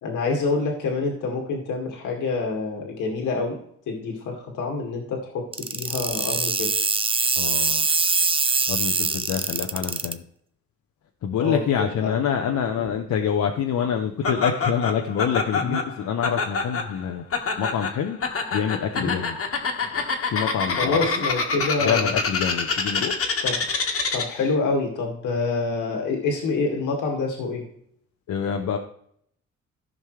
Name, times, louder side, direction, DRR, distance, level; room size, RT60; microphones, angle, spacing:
voice 1, 0.0-3.6 3.9-6.8 11.4-12.2 12.8-12.9 15.6-15.7 18.9-19.2 20.8-22.1 23.4-23.6 24.1-27.6, left 3 dB, 85° left, 0 dB, 2.2 m, -27 dB
sound 1, 5.5-10.1, right 4 dB, 20° right, 0.6 m, -23 dB
voice 2, 7.4-7.9 8.7-10.2 11.2-17.2 17.6-18.2 18.5-19.4 20.2-21.0 21.8-23.1 28.3-28.8, left 8 dB, 65° left, 3 dB, 0.9 m, -26 dB
Laughter, 14.2-24.5, left 4 dB, 50° left, 1.6 m, -27 dB
14.5 x 5.4 x 3.2 m, 0.68 s
cardioid pair, 90°, 30 cm